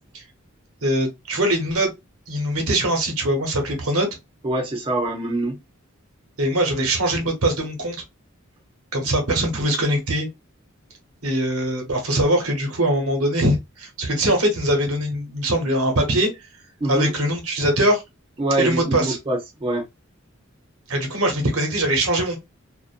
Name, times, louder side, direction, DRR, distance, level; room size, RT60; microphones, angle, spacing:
voice 1, 0.8-1.9 2.3-4.1 6.4-8.0 8.9-10.3 11.2-16.3 16.9-18.0 18.6-19.2 20.9-22.4, right 1 dB, 90° right, 1.0 m, -22 dB
voice 2, 4.4-5.6 16.8-17.1 18.4-19.8, right 1 dB, 25° right, 0.5 m, -24 dB
2.5 x 2.1 x 2.4 m
head